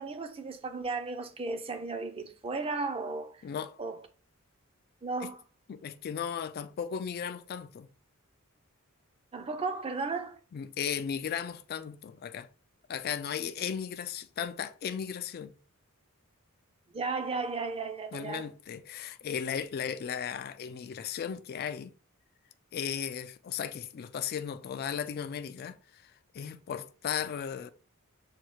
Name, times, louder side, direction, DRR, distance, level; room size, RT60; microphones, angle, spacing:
voice 1, 0.0-3.4 3.8-4.0 5.0-5.4 9.3-10.4 16.9-18.5, right 3 dB, 25° right, 0.5 m, -35 dB
voice 2, 3.4-3.8 5.7-7.9 10.5-12.5 12.9-15.5 18.1-21.9 22.7-27.7, left 8 dB, 45° left, 0.3 m, -36 dB
6.6 x 2.3 x 3.1 m
head